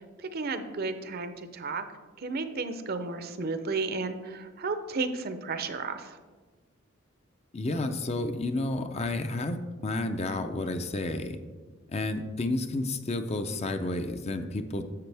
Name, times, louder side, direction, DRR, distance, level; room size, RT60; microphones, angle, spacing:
voice 1, 0.0-1.8 2.2-6.2, right 3 dB, 50° right, 9 dB, 0.6 m, -33 dB
voice 2, 7.5-9.6 9.8-11.4 11.9-14.8, left 2 dB, 30° left, 8 dB, 0.5 m, -31 dB
10.5 x 7.6 x 3.4 m, 1.4 s
head